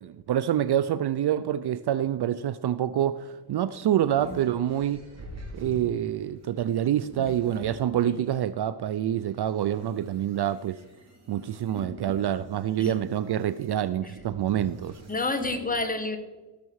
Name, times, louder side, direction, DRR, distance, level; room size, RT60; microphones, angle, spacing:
voice 1, 0.0-5.0 5.5-10.8 11.3-15.0, right 11 dB, 55° right, 15 dB, 0.5 m, -27 dB
sound 1, 3.4-8.4 9.0-15.6, right 1 dB, 30° right, 4.1 m, -46 dB
voice 2, 15.1-16.2, left 3 dB, 15° left, 6 dB, 1.7 m, -29 dB
18.0 x 6.7 x 4.8 m, 1.2 s
cardioid pair, 90°, 50 cm